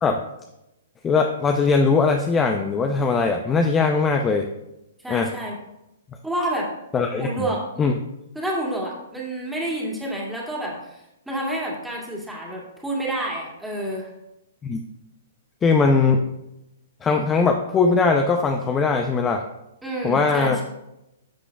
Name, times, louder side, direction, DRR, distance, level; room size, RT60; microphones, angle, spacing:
voice 1, 1.0-4.5 5.1-5.3 6.9-7.5 7.8-7.9 14.6-14.8 15.6-16.2 17.0-19.4 20.0-20.6, left 4 dB, 20° left, 4 dB, 0.5 m, -20 dB
voice 2, 5.0-5.5 6.2-6.7 7.2-7.6 8.3-14.1 19.8-20.6, right 1 dB, 5° right, -4 dB, 2.1 m, -29 dB
11.5 x 6.0 x 2.3 m, 0.90 s
hypercardioid pair, 130°, 0 cm